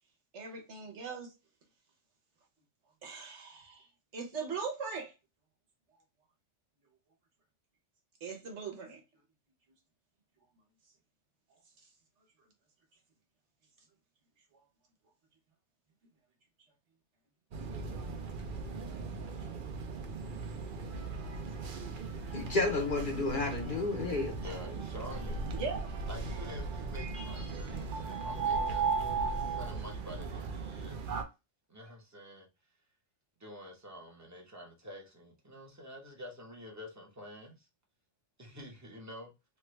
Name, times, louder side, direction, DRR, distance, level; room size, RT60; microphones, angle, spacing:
voice 1, 0.3-1.3 3.0-3.9 4.1-5.1 8.2-9.0 25.5-25.9, right 5 dB, 70° right, 1.2 m, -39 dB
sound 1, 17.5-31.2, right 4 dB, 55° right, 0.7 m, -37 dB
voice 2, 22.2-24.4, left 3 dB, 50° left, 0.8 m, -31 dB
voice 3, 24.4-25.5 26.1-28.9 29.5-31.1 31.7-32.5 33.4-37.7 38.4-39.3, equal, 15° right, 0.8 m, -48 dB
3.3 x 2.3 x 3.1 m
omnidirectional pair, 1.2 m